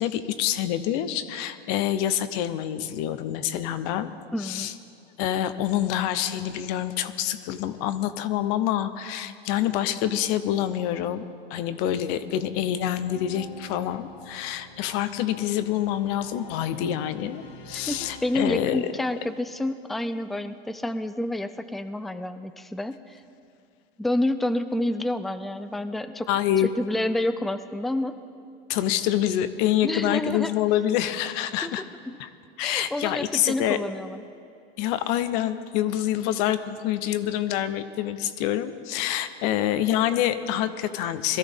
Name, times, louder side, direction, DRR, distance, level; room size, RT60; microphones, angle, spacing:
voice 1, 0.0-4.1 4.4-4.7 5.2-18.9 26.3-26.7 28.7-31.8 32.2-32.3 32.6-33.8 34.8-41.4, left 11 dB, 55° left, 12 dB, 0.9 m, -26 dB
voice 2, 4.3-4.7 17.9-23.2 24.0-26.3 26.6-28.2 29.8-30.5 31.6-31.7 32.6-34.2, left 1 dB, ahead, 11 dB, 0.4 m, -29 dB
sound 1, 12.4-19.2, left 4 dB, 70° left, 2.5 m, -46 dB
22.0 x 13.5 x 3.6 m, 2.5 s
hypercardioid pair, 105°, 31 cm